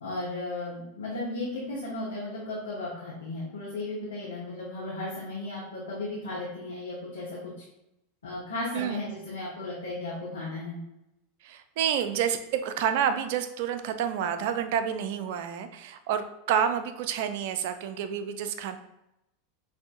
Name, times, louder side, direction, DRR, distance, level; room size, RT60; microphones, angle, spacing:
voice 1, 0.0-7.5 8.2-10.8, left 2 dB, 85° left, -7 dB, 1.2 m, -35 dB
voice 2, 11.4-18.8, right 8 dB, 60° right, 9 dB, 0.4 m, -29 dB
6.0 x 2.7 x 2.5 m, 0.87 s
hypercardioid pair, 90°, 0 cm